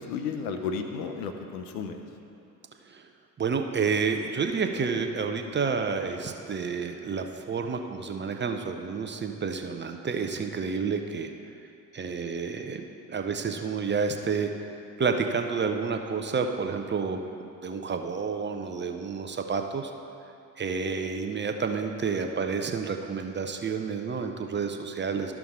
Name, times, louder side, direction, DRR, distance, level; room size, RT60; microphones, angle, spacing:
voice 1, 0.0-2.0, left 5 dB, 75° left, 6 dB, 0.8 m, -33 dB
voice 2, 3.4-11.3 11.9-14.5 15.0-17.2 17.6-19.9 20.6-25.3, right 5 dB, 25° right, 5 dB, 0.7 m, -30 dB
12.5 x 6.0 x 3.6 m, 2.7 s
hypercardioid pair, 60°, 46 cm